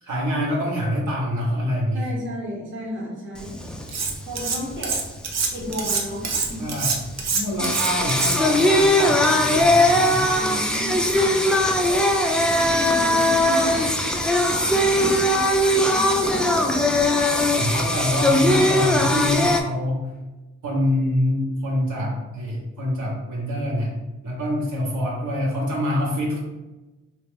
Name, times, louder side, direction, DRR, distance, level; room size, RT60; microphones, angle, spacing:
voice 1, 0.0-2.1 6.6-6.9 7.3-10.2 17.0-20.0 20.6-23.9 24.2-26.4, equal, 80° right, -4 dB, 1.0 m, -25 dB
voice 2, 1.9-3.6 4.3-5.0 5.5-6.7 10.3-11.4 12.3-13.8 14.4-16.5, equal, 40° right, -3 dB, 0.9 m, -33 dB
Singing, 3.4-19.6, left 1 dB, 5° left, 0.3 m, -20 dB
Cutlery silverware, 3.9-4.6 4.8-8.6, right 5 dB, 65° right, 0.6 m, -25 dB
3.0 x 2.4 x 3.2 m, 1.1 s
cardioid pair, 75°, 29 cm